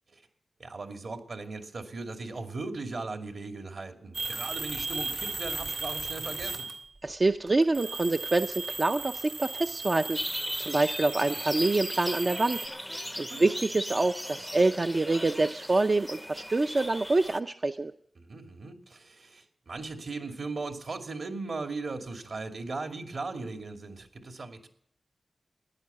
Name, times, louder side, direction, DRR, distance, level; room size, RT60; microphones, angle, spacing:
voice 1, 0.6-6.7 13.3-13.5 18.2-24.7, right 3 dB, 65° right, 5 dB, 2.5 m, -38 dB
sound 1, 4.1-7.0 7.5-12.7, right 3 dB, 80° right, 2.9 m, -36 dB
voice 2, 7.0-10.2 10.6-12.6 13.2-17.9, right 2 dB, 35° right, 7 dB, 0.6 m, -26 dB
sound 2, 10.1-17.4, equal, 5° left, 0.6 m, -38 dB
15.0 x 10.5 x 8.3 m, 0.66 s
wide cardioid pair, 105°, 0 cm